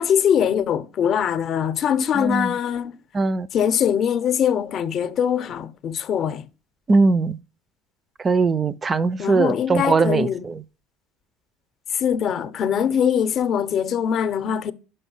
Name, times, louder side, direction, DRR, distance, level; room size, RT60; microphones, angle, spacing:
voice 1, 0.0-3.0 3.5-6.4 9.2-10.4 11.9-14.7, left 8 dB, 50° left, 0.6 m, -22 dB
voice 2, 2.1-2.5 3.1-3.5 6.9-7.4 8.2-10.6, right 4 dB, 25° right, 0.4 m, -20 dB
5.6 x 5.5 x 5.4 m
supercardioid pair, 90°, 0 cm